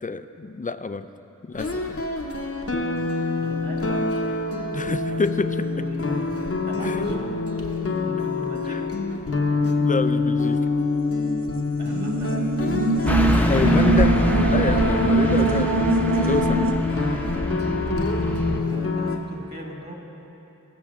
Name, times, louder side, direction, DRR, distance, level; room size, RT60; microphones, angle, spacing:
voice 1, 0.0-1.1 1.5-2.0 4.7-5.8 6.8-7.0 8.7-8.8 9.8-10.6 13.5-14.1 14.5-16.7, left 4 dB, 25° left, 11 dB, 0.4 m, -27 dB
sound 1, 1.5-19.2, left 3 dB, 45° left, 0.8 m, -26 dB
voice 2, 3.4-4.4 4.8-5.2 5.7-7.5 8.0-9.0 11.8-12.4 17.0-17.1 18.5-19.9, equal, 30° right, -1 dB, 1.9 m, -40 dB
sound 2, 9.5-16.7, right 2 dB, 85° right, 0.7 m, -24 dB
Car passing by / Truck, 13.0-18.6, left 1 dB, 5° left, 0.8 m, -24 dB
18.5 x 7.1 x 3.6 m, 3.0 s
wide cardioid pair, 45°, 33 cm